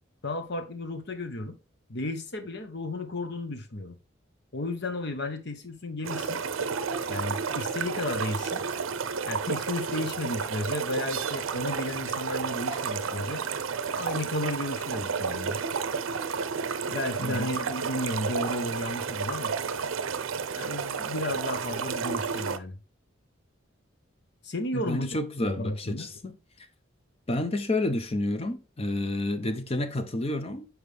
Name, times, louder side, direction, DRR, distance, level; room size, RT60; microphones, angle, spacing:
voice 1, 0.2-1.6 1.9-3.9 4.5-6.4 7.1-8.6 9.2-13.4 13.9-15.6 16.9-19.5 20.5-22.8 24.4-25.1 25.4-26.1, left 1 dB, 55° left, 1.0 m, -33 dB
sound 1, 6.0-22.6, right 5 dB, 85° right, 0.6 m, -31 dB
voice 2, 24.7-26.4 27.3-30.7, left 1 dB, 30° left, 0.7 m, -30 dB
7.3 x 4.7 x 3.4 m
head